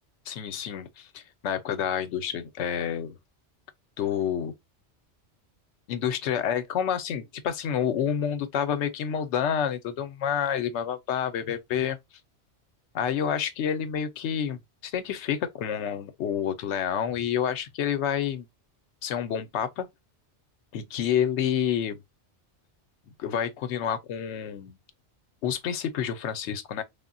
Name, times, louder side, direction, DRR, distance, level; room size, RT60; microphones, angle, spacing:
voice 1, 0.3-3.1 4.0-4.5 5.9-12.0 12.9-18.5 19.0-19.9 20.7-22.0 23.2-24.8 25.4-26.8, left 8 dB, 75° left, 0.9 m, -29 dB
3.5 x 2.1 x 2.5 m
omnidirectional pair, 1.2 m